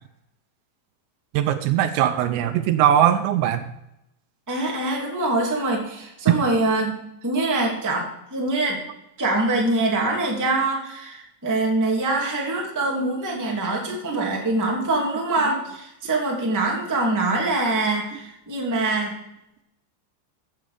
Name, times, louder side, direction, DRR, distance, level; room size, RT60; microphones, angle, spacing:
voice 1, 1.3-3.6 13.4-13.5 14.1-14.4, right 10 dB, 80° right, 9 dB, 2.9 m, -20 dB
voice 2, 4.5-8.8 9.2-19.2, right 2 dB, 5° right, -2 dB, 1.3 m, -24 dB
15.0 x 8.0 x 5.1 m, 0.83 s
omnidirectional pair, 5.3 m